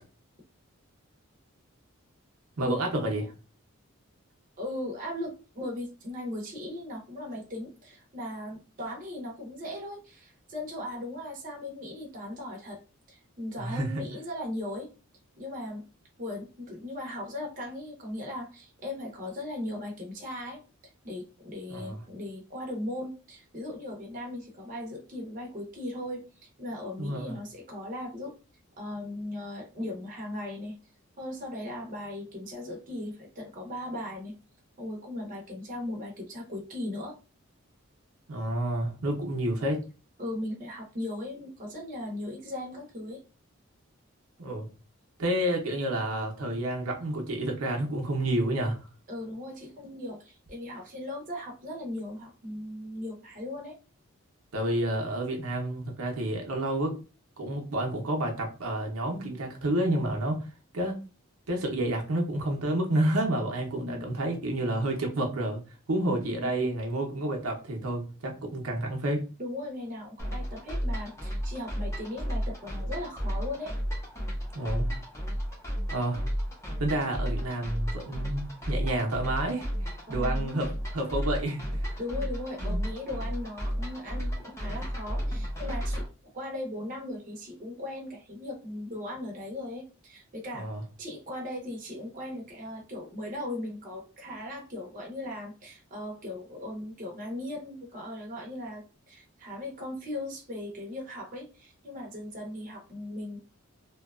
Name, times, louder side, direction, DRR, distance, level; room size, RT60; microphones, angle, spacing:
voice 1, 2.6-3.3 13.6-14.0 21.7-22.0 27.0-27.3 38.3-39.8 44.4-44.7 45.2-48.9 54.5-57.0 57.4-60.4 60.7-61.0 61.5-65.6 65.9-69.3 74.5-74.9 75.9-76.2 76.8-81.9 82.6-82.8 90.5-90.8, right 1 dB, 85° right, 1 dB, 0.6 m, -30 dB
voice 2, 4.6-12.8 13.1-14.9 15.4-15.8 16.2-28.3 28.8-30.7 31.2-34.3 34.8-37.2 40.2-43.2 49.1-53.8 63.8-64.1 66.3-66.5 69.4-73.7 80.1-80.7 82.0-86.1 86.3-90.7 91.0-103.5, left 1 dB, 35° right, -1 dB, 0.6 m, -38 dB
sound 1, 70.2-86.1, equal, 15° left, 0.6 m, -33 dB
2.7 x 2.2 x 2.3 m, 0.33 s
head